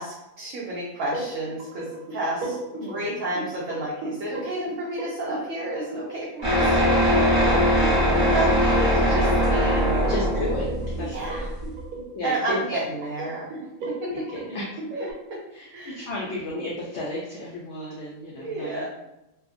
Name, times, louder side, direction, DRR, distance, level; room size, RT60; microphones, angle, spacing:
voice 1, 0.0-1.8 2.1-10.0 11.0-11.5 12.2-13.7 14.0-14.1 14.9-15.1 15.7-16.0 18.4-18.8, right 1 dB, 70° right, -6 dB, 1.0 m, -31 dB
sound 1, 1.1-15.1, right 2 dB, 85° right, 1.1 m, -36 dB
voice 2, 2.8-3.2 6.7-6.9 8.1-8.5 10.1-11.4 12.1-12.6 14.1-14.7 15.5-18.8, left 1 dB, 65° left, -4 dB, 0.7 m, -34 dB
sound 2, 6.4-11.8, equal, 30° right, 1.1 m, -21 dB
2.7 x 2.3 x 2.4 m, 0.91 s
omnidirectional pair, 1.5 m